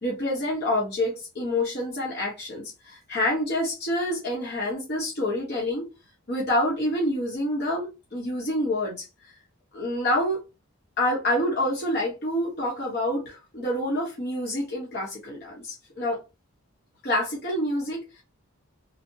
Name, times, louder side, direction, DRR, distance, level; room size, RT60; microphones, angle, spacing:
voice 1, 0.0-5.9 6.3-9.1 9.7-10.4 11.0-16.2 17.0-18.2, left 1 dB, 45° left, 1.0 m, -27 dB
3.3 x 2.1 x 2.7 m
head